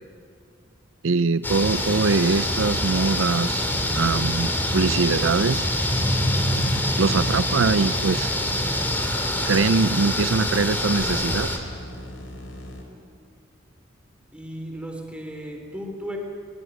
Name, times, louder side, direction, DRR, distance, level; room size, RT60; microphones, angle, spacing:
voice 1, 1.0-3.7 3.9-5.7 7.0-8.3 9.4-11.5, right 4 dB, 80° right, 14 dB, 0.6 m, -22 dB
sound 1, 1.4-11.6, left 1 dB, 10° left, 2.5 m, -25 dB
sound 2, 2.4-12.8, left 1 dB, 90° left, 4.2 m, -39 dB
voice 2, 14.3-16.2, equal, 5° right, 2 dB, 3.7 m, -35 dB
21.5 x 19.5 x 9.4 m, 2.4 s
head